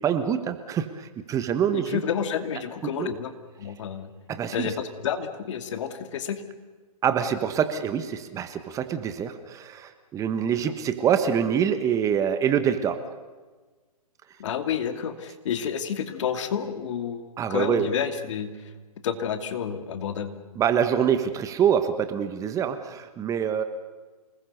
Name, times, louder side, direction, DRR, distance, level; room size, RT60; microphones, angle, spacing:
voice 1, 0.0-2.0 2.8-3.1 4.3-4.7 7.0-13.0 17.4-17.9 20.6-23.6, right 8 dB, 15° right, 10 dB, 1.3 m, -25 dB
voice 2, 1.7-3.3 3.6-4.1 4.5-6.4 10.7-10.8 14.4-18.7 19.0-20.4, left 8 dB, 50° left, 8 dB, 2.6 m, -30 dB
27.5 x 20.0 x 6.7 m, 1.3 s
hypercardioid pair, 135°, 20 cm